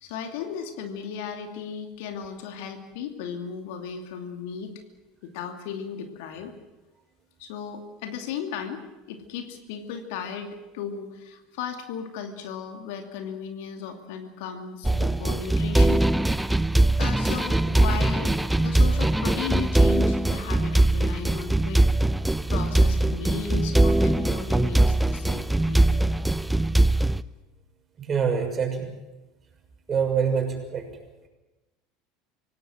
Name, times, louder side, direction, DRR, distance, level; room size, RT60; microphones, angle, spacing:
voice 1, 0.0-4.8 5.2-6.5 7.4-16.1 17.0-21.8 22.5-26.1, left 7 dB, 60° left, 6 dB, 2.6 m, -36 dB
sound 1, 14.8-27.2, right 1 dB, 5° right, 0.8 m, -21 dB
voice 2, 28.0-28.9 29.9-30.9, right 6 dB, 30° right, 3 dB, 6.6 m, -25 dB
25.5 x 18.0 x 7.6 m, 1.1 s
figure-of-eight pair, 75°, 0 cm